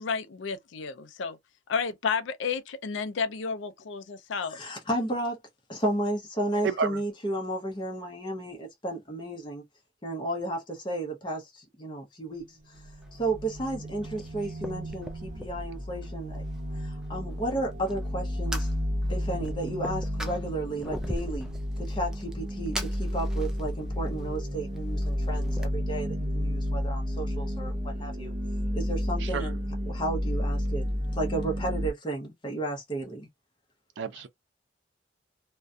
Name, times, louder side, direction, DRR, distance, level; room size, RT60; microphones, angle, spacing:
voice 1, 0.0-1.4 1.7-4.6, left 5 dB, 80° left, 0.4 m, -31 dB
voice 2, 4.5-5.4 5.7-9.6 10.0-12.6 13.1-16.4 16.7-18.7 19.1-28.3 28.7-29.6 29.9-30.9 31.1-33.3, right 1 dB, 25° left, 0.7 m, -33 dB
voice 3, 6.6-7.0 29.2-29.5 34.0-34.3, right 5 dB, 75° right, 0.4 m, -30 dB
sound 1, 12.4-31.9, equal, 45° right, 0.7 m, -32 dB
Fire, 12.7-25.7, equal, 5° right, 0.3 m, -43 dB
2.4 x 2.1 x 2.6 m
head